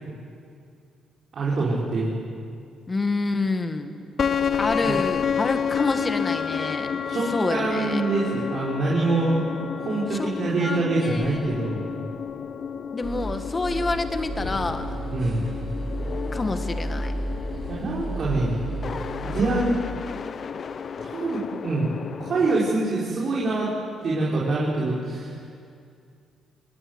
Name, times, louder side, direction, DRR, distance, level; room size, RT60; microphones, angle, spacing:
voice 1, 1.3-2.1 4.8-4.9 7.1-7.2 7.5-9.4 9.8-11.8 15.1-15.4 17.7-18.6 19.2-19.8 21.0-21.9 22.2-23.7 24.0-25.4, right 3 dB, 50° right, -6 dB, 5.0 m, -25 dB
voice 2, 2.9-4.0 4.6-7.0 7.3-8.0 10.1-10.3 10.6-11.4 12.9-15.0 16.3-17.1, left 3 dB, 30° left, 8 dB, 1.9 m, -28 dB
sound 1, 4.2-22.5, left 7 dB, 50° left, 0.8 m, -31 dB
sound 2, 13.0-19.8, right 2 dB, 35° right, 6.4 m, -33 dB
26.5 x 19.5 x 8.1 m, 2.3 s
cardioid pair, 90°, 0 cm